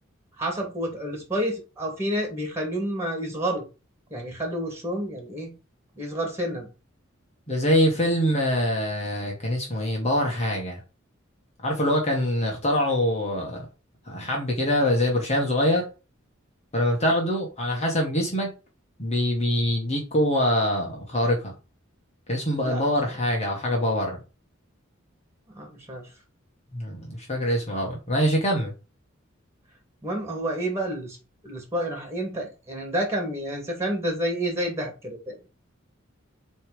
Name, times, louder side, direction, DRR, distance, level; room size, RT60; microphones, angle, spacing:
voice 1, 0.4-3.6 4.1-5.5 5.9-6.7 22.6-23.2 25.5-26.1 30.0-31.2 31.4-35.4, right 1 dB, 15° right, 2.8 m, -29 dB
voice 2, 7.5-10.8 11.6-13.7 14.1-15.9 16.7-18.5 19.0-21.5 22.3-24.2 26.7-28.7, equal, 35° left, 1.8 m, -24 dB
8.4 x 3.4 x 5.1 m
head